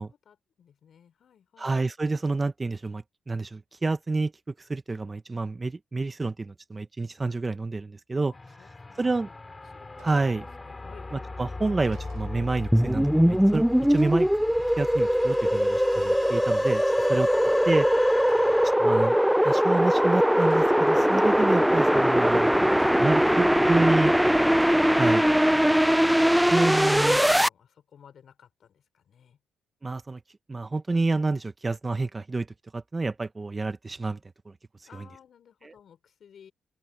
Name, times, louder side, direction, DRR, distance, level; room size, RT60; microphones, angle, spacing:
voice 1, 0.0-1.8 8.3-9.0 9.3-9.4 9.7-11.2 17.0-17.9 27.0-29.4 34.9-36.5, left 8 dB, 60° left, 6.2 m, -54 dB
voice 2, 1.6-8.3 9.0-9.3 10.0-10.4 11.1-14.3 14.8-16.8 17.1-17.3 17.7-17.9 18.8-19.2 19.4-22.5 23.0-24.1 25.0-25.2 26.5-27.2 29.8-30.2 30.5-32.5 32.7-34.2 34.5-34.6 34.9-35.0 35.6-35.7, right 3 dB, 25° right, 1.2 m, -28 dB
sound 1, 8.3-18.8, left 3 dB, 20° left, 3.5 m, -37 dB
sound 2, 8.9-9.0 9.5-9.7 10.0-10.5 11.3-11.4 11.7-12.4 13.4-13.6 13.9-14.4 15.3-15.5 15.9-16.4 18.2-18.8 19.9-20.0 20.4-20.9 22.1-22.2 22.7-23.2 24.5-24.8, right 11 dB, 80° right, 3.8 m, -53 dB
sound 3, 12.7-27.5, equal, ahead, 0.5 m, -21 dB
open air
cardioid pair, 90°, 0 cm